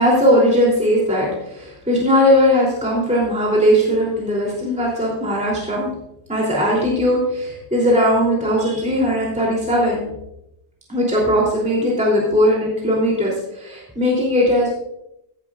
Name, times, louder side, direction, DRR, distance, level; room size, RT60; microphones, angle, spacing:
voice 1, 0.0-5.9 6.3-10.0 10.9-14.7, equal, 5° right, -5 dB, 3.1 m, -18 dB
16.0 x 11.0 x 2.5 m, 0.83 s
omnidirectional pair, 2.0 m